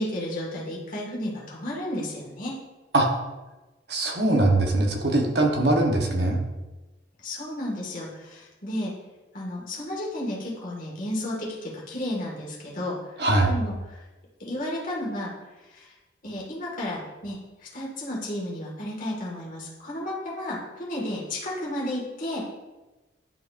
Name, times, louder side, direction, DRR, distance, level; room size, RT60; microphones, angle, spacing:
voice 1, 0.0-2.6 7.2-8.9 9.3-13.2 13.5-14.0 14.4-15.3 15.6-15.9 16.2-22.4, left 1 dB, 45° left, -4 dB, 1.8 m, -32 dB
voice 2, 3.9-6.4 13.2-13.5, right 2 dB, 60° right, 2 dB, 1.0 m, -21 dB
11.0 x 4.7 x 2.5 m, 1.1 s
head